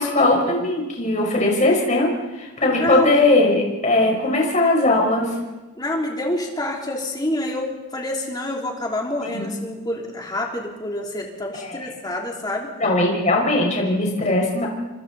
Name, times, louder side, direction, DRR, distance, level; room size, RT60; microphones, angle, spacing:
voice 1, 0.0-5.3 9.2-9.5 11.6-11.8 12.8-14.7, left 2 dB, 35° left, -1 dB, 5.5 m, -19 dB
voice 2, 2.7-3.2 5.8-12.7, left 1 dB, 20° left, -1 dB, 3.5 m, -27 dB
28.0 x 25.5 x 4.2 m, 1.1 s
head